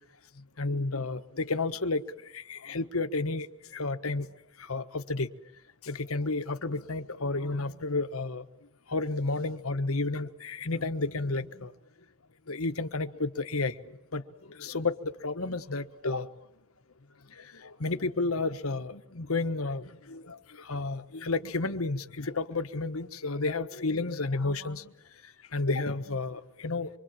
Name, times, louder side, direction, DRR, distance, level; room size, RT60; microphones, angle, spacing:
voice 1, 0.6-2.0 2.3-3.5 3.7-4.3 4.7-5.3 5.8-8.4 8.9-11.7 12.5-13.7 14.1-14.2 14.6-16.3 17.6-24.9 25.5-26.9, left 3 dB, 85° left, 9 dB, 1.4 m, -31 dB
25.5 x 24.5 x 7.6 m, 0.83 s
head